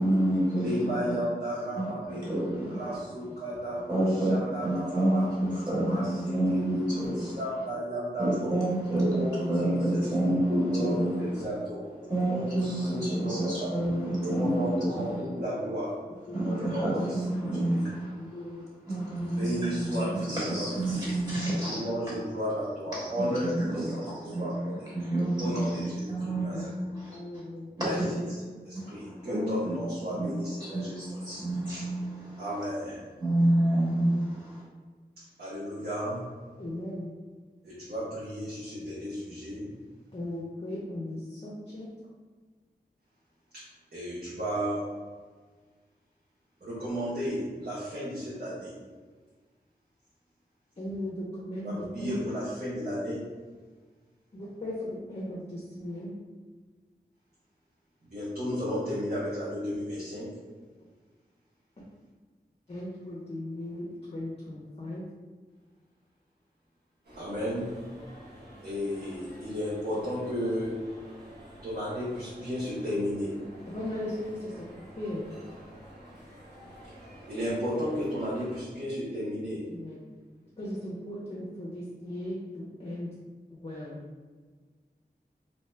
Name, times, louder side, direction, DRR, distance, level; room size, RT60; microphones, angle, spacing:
voice 1, 0.0-1.1 1.7-2.8 3.9-7.4 8.2-11.2 12.1-15.1 16.3-18.1 18.9-21.8 22.9-24.5 24.9-25.7 26.1-27.2 27.8-28.1 28.7-29.8 30.2-30.3 30.6-32.4 33.2-34.6, right 1 dB, 25° right, -9 dB, 1.5 m, -28 dB
voice 2, 0.5-2.3 2.7-5.3 5.8-8.6 9.1-11.8 12.3-13.7 14.2-16.0 16.4-17.1 17.4-17.8 19.3-20.7 20.9-21.1 21.6-24.9 25.4-26.7 27.8-28.0 28.6-31.0 31.3-31.4 32.4-33.1 35.2-36.2 37.6-39.7 43.5-43.6 43.9-44.8 46.6-48.7 51.6-53.2 58.0-60.3 67.1-67.7 68.6-70.7 71.6-73.3 77.3-79.6, equal, 60° right, -10 dB, 1.0 m, -34 dB
voice 3, 3.4-3.8 10.3-10.4 12.0-12.4 16.3-16.6 18.1-18.6 19.1-19.5 24.2-24.4 26.5-26.6 27.1-27.7 34.1-34.2 36.6-37.1 40.1-41.9 50.8-52.2 54.3-56.1 60.8-60.9 61.8-61.9 62.7-65.1 73.7-75.3 79.6-80.0 80.6-83.1 83.5-84.0, left 1 dB, 35° left, -5 dB, 0.6 m, -38 dB
sound 1, 67.0-78.6, equal, 85° right, 0.9 m, -49 dB
2.8 x 2.2 x 3.2 m, 1.4 s
wide cardioid pair, 60°, 17 cm